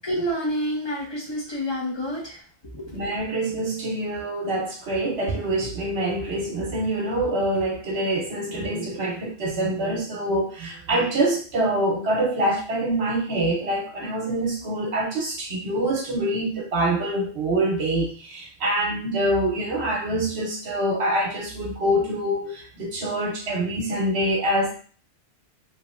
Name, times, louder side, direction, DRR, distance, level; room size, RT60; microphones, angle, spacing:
voice 1, 0.0-2.5 2.7-3.0, equal, 25° left, -3 dB, 0.8 m, -28 dB
voice 2, 2.9-24.8, right 1 dB, 70° right, 0 dB, 1.1 m, -25 dB
2.9 x 2.9 x 2.4 m, 0.42 s
omnidirectional pair, 1.2 m